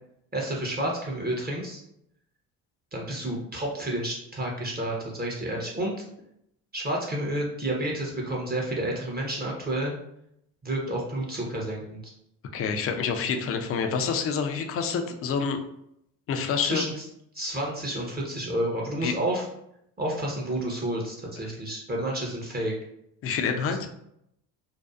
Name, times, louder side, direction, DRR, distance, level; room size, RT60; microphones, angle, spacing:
voice 1, 0.3-1.8 2.9-5.9 6.7-9.9 10.6-12.1 16.6-17.1 17.3-19.4 20.0-22.7 23.7-23.8, right 1 dB, 20° right, -2 dB, 0.6 m, -30 dB
voice 2, 12.5-15.6 16.3-16.9 19.0-19.1 23.2-23.9, left 6 dB, 35° left, 6 dB, 0.4 m, -27 dB
2.6 x 2.3 x 2.3 m, 0.75 s
hypercardioid pair, 60°, 45 cm